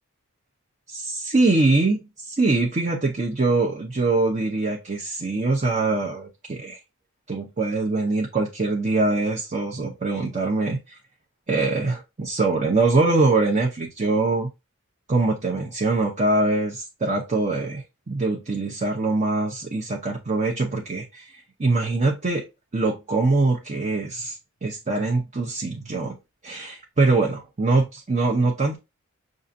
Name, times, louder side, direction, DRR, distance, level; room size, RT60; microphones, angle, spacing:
voice 1, 0.9-6.8 7.3-11.0 11.5-14.5 15.1-22.4 22.7-24.4 24.6-26.2 26.4-28.8, right 3 dB, 35° right, 0.8 m, -23 dB
6.3 x 2.5 x 2.6 m
head